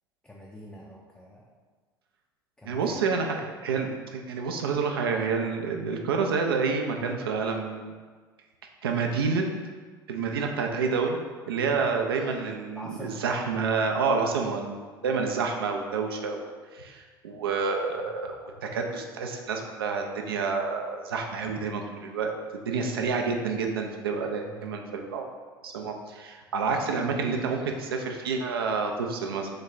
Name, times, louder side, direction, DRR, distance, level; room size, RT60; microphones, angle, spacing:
voice 1, 0.2-1.5 2.6-3.0 11.6-11.9 12.7-13.2 15.0-15.2 24.4-24.7, equal, 10° left, -4 dB, 0.4 m, -45 dB
voice 2, 2.6-7.9 8.8-9.5 10.1-11.2 11.5-16.4 16.7-22.3 22.7-25.3 25.6-29.5, right 5 dB, 75° right, 2 dB, 0.4 m, -28 dB
3.0 x 2.2 x 3.8 m, 1.5 s
figure-of-eight pair, 65°, 12 cm